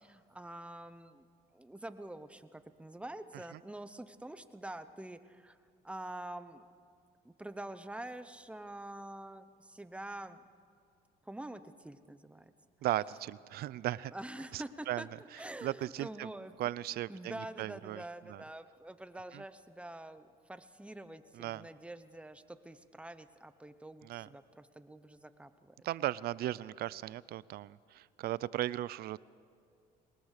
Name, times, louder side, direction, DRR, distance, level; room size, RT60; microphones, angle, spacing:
voice 1, 0.0-1.3 1.5-5.6 5.8-6.7 7.2-10.4 11.2-12.5 14.1-16.5 16.9-25.9, right 1 dB, 5° right, 11 dB, 1.0 m, -46 dB
voice 2, 12.8-14.1 14.5-15.0 15.6-16.3 16.6-18.0 18.3-18.4 19.3-19.4 21.3-21.6 24.0-24.3 25.8-29.2, right 14 dB, 65° right, 20 dB, 0.5 m, -37 dB
22.0 x 19.5 x 6.6 m, 2.3 s
cardioid pair, 110°, 17 cm